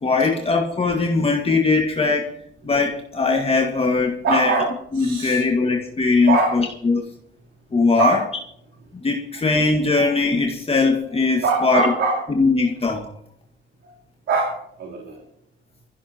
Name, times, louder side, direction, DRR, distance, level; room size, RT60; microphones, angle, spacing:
voice 1, 0.0-2.4 2.6-4.5 4.9-7.0 7.7-8.2 8.9-11.9 12.3-13.1, left 3 dB, 30° left, 1 dB, 2.0 m, -20 dB
voice 2, 4.2-5.4 6.3-6.6 7.9-8.2 9.4-9.5 11.4-12.2 13.8-13.9 14.3-14.5 14.8-15.2, right 3 dB, 70° right, -3 dB, 3.6 m, -22 dB
23.0 x 15.5 x 3.0 m, 0.75 s
cardioid pair, 90°, 20 cm